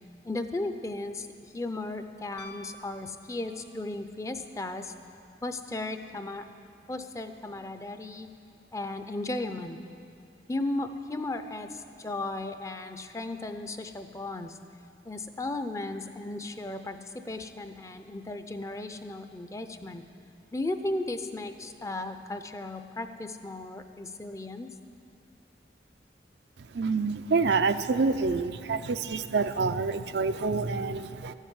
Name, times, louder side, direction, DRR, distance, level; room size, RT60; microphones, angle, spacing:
voice 1, 0.2-4.9 5.4-6.4 6.9-8.3 8.7-9.8 10.5-14.6 15.0-17.0 17.2-20.0 20.5-24.7, left 2 dB, 20° left, 8 dB, 0.5 m, -35 dB
Piano, 2.4-4.0 6.3-6.4, left 1 dB, 85° left, 0.7 m, -49 dB
voice 2, 26.7-31.3, right 4 dB, 80° right, 10 dB, 0.5 m, -27 dB
13.0 x 7.3 x 9.6 m, 2.6 s
head